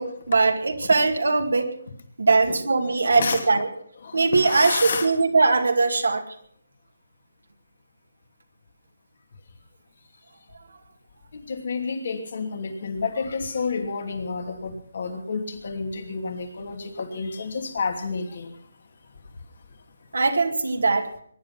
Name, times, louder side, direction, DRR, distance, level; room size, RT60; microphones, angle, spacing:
voice 1, 0.0-1.7 2.2-3.7 4.1-6.2 20.1-21.1, right 3 dB, 80° right, 3 dB, 2.3 m, -21 dB
voice 2, 3.0-3.4 4.3-5.1 11.3-18.5, left 4 dB, 55° left, 5 dB, 2.7 m, -30 dB
22.0 x 10.5 x 5.8 m, 0.62 s
figure-of-eight pair, 160°, 0 cm